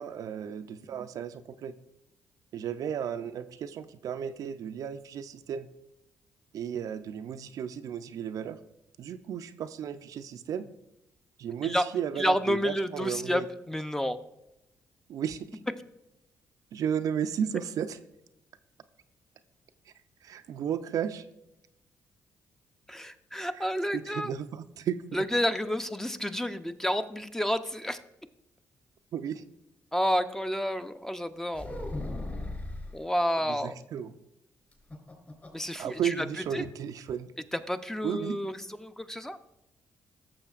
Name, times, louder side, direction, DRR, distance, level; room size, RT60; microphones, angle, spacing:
voice 1, 0.0-1.7 2.5-5.7 6.5-8.6 9.0-10.7 11.4-13.5 15.1-15.4 16.7-18.0 20.2-21.3 23.5-25.0 29.1-29.4 33.4-34.1 35.8-37.3 38.0-38.4, right 8 dB, 70° right, 10 dB, 0.4 m, -34 dB
voice 2, 12.2-14.2 22.9-24.3 25.1-28.0 29.9-31.7 32.9-33.7 35.5-36.3 36.5-36.7 37.5-39.4, equal, 5° left, 9 dB, 0.6 m, -30 dB
sound 1, 31.5-33.0 34.7-35.7 36.0-36.1 36.4-36.7, left 2 dB, 30° left, 3.3 m, -37 dB
13.5 x 6.9 x 2.4 m, 0.86 s
supercardioid pair, 60°, 6 cm